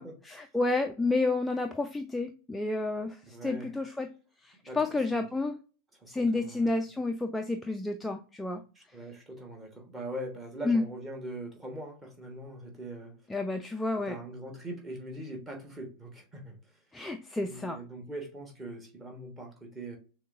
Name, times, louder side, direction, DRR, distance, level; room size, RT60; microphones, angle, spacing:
voice 1, 0.0-4.1 4.4-5.6 6.1-8.6 10.7-10.8 13.3-14.2 16.9-17.8, left 2 dB, 5° left, 0.3 m, -30 dB
voice 2, 3.2-3.8 4.6-4.8 5.1-5.2 5.9-6.8 8.7-13.1 14.0-16.6 17.4-20.0, right 1 dB, 15° right, 1.3 m, -42 dB
6.2 x 2.1 x 2.6 m
figure-of-eight pair, 90°, 0 cm